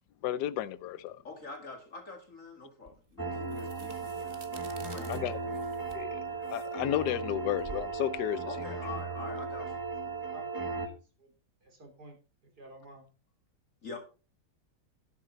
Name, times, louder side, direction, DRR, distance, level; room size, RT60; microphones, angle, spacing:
voice 1, 0.2-1.2 5.1-5.4 5.9-6.2 6.5-8.5, left 12 dB, 80° left, 1.3 m, -32 dB
voice 2, 1.2-5.5 8.5-9.8 13.8-14.0, left 3 dB, 50° left, 2.5 m, -45 dB
sound 1, 2.9-9.6, right 4 dB, 35° right, 1.4 m, -52 dB
sound 2, 3.2-10.9, right 4 dB, 15° right, 1.2 m, -36 dB
voice 3, 10.1-11.3 11.6-12.2 12.6-13.1, right 1 dB, 65° right, 4.1 m, -52 dB
11.5 x 8.6 x 4.1 m
omnidirectional pair, 1.8 m